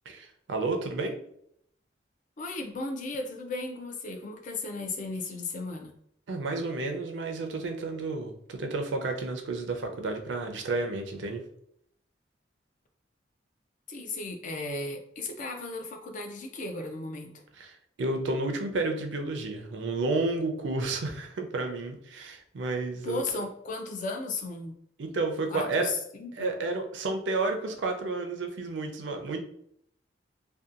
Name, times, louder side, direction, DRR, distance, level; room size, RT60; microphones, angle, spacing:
voice 1, 0.1-1.2 6.3-11.4 17.5-23.2 25.0-25.9 26.4-29.4, right 3 dB, 70° right, 4 dB, 0.5 m, -31 dB
voice 2, 2.4-5.9 13.9-17.4 23.0-24.7 25.5-26.5, left 3 dB, 45° left, 4 dB, 0.4 m, -35 dB
2.7 x 2.2 x 2.4 m, 0.70 s
head